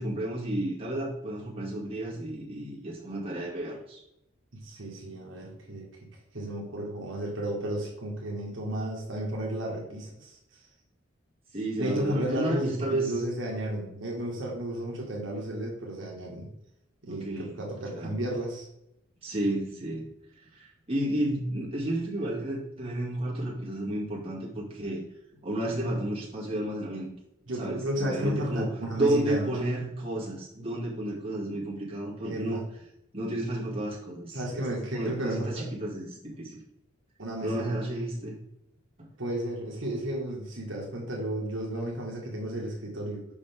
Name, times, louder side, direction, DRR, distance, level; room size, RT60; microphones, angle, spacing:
voice 1, 0.0-4.0 11.5-13.1 17.1-17.6 17.9-18.2 19.2-20.1 20.5-25.0 25.4-27.1 27.6-32.6 33.1-34.6 34.9-36.6 37.4-38.4, right 1 dB, 30° right, -5 dB, 2.3 m, -32 dB
voice 2, 4.5-5.9 6.3-10.6 11.7-16.5 17.0-18.7 27.5-29.5 32.2-32.6 34.3-35.7 37.2-37.8 39.2-43.3, right 1 dB, 70° right, -2 dB, 1.7 m, -33 dB
7.0 x 5.5 x 3.5 m, 0.82 s
head